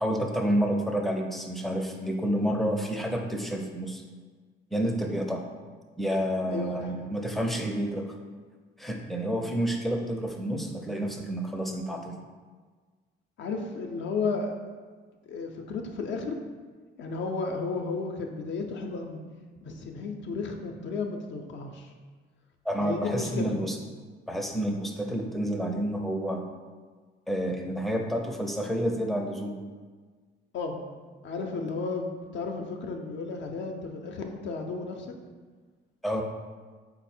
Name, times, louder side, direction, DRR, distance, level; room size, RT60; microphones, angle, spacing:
voice 1, 0.0-4.0 4.7-5.4 6.0-8.1 8.8-12.1 22.7-23.8 24.3-26.4 27.3-29.5 36.0-36.2, equal, ahead, 1 dB, 0.4 m, -29 dB
voice 2, 6.5-7.1 13.4-14.5 15.3-16.4 17.0-19.2 19.6-21.9 22.8-23.6 30.5-30.8 31.2-35.1, left 4 dB, 65° left, 3 dB, 0.5 m, -33 dB
4.1 x 2.0 x 4.2 m, 1.5 s
cardioid pair, 90°, 20 cm